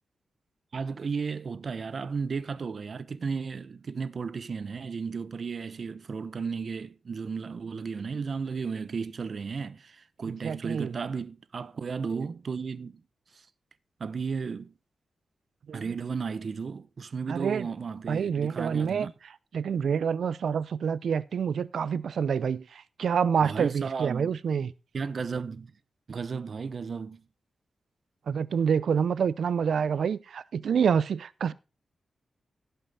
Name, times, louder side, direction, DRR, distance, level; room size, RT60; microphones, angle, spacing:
voice 1, 0.7-13.0 13.3-13.5 14.0-14.7 15.7-19.1 23.4-24.4 24.9-25.7 26.1-27.2, right 5 dB, 55° right, 0.8 m, -34 dB
voice 2, 10.3-10.9 15.7-15.8 17.3-17.7 18.1-19.1 19.5-24.7 28.3-31.5, right 7 dB, 80° right, 0.6 m, -27 dB
16.5 x 5.7 x 4.1 m
wide cardioid pair, 105°, 0 cm